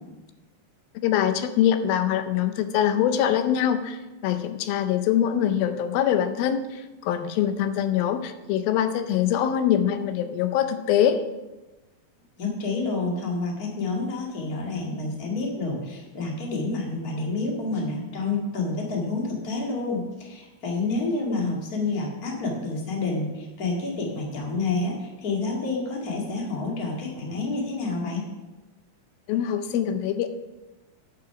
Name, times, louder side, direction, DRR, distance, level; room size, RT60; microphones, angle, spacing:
voice 1, 1.0-11.2 29.3-30.3, left 10 dB, 85° left, 10 dB, 2.4 m, -24 dB
voice 2, 12.4-28.3, left 3 dB, 30° left, -2 dB, 1.9 m, -29 dB
8.6 x 8.0 x 5.8 m, 1.1 s
omnidirectional pair, 4.1 m